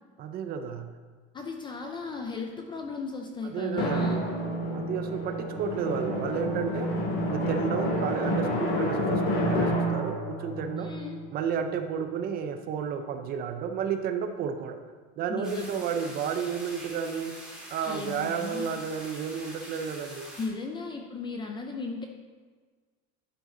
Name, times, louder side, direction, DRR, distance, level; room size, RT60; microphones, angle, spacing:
voice 1, 0.2-0.9 3.4-4.3 4.7-6.9 7.3-10.9 11.3-14.8 15.2-17.4 17.7-20.3, right 7 dB, 30° right, 7 dB, 0.5 m, -32 dB
voice 2, 1.3-4.3 10.8-11.2 15.3-15.7 17.9-18.7 20.4-22.1, left 4 dB, 15° left, 3 dB, 0.4 m, -36 dB
Drum, 3.8-12.1, equal, 60° left, 2.8 m, -29 dB
sound 1, 15.4-20.4, right 1 dB, ahead, 2.2 m, -44 dB
11.0 x 6.8 x 3.8 m, 1.5 s
cardioid pair, 175°, 30 cm